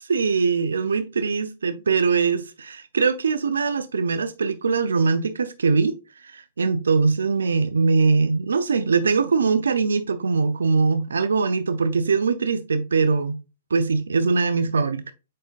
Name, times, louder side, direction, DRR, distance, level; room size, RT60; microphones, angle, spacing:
voice 1, 0.0-5.9 6.2-13.3 13.7-15.1, right 4 dB, 85° right, 0.6 m, -22 dB
7.6 x 5.2 x 2.5 m
hypercardioid pair, 130°, 0 cm